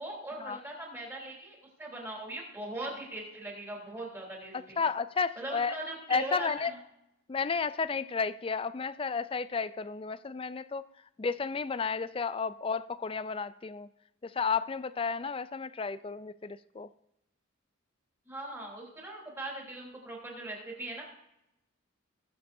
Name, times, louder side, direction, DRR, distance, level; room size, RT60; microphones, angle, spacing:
voice 1, 0.0-4.8 5.4-6.8 18.2-21.0, right 1 dB, 15° right, -2 dB, 3.3 m, -40 dB
voice 2, 4.5-5.8 6.1-6.7 7.3-10.8 11.2-13.9 14.2-16.9, left 5 dB, 25° left, 15 dB, 0.3 m, -32 dB
20.0 x 7.7 x 2.7 m, 0.85 s
head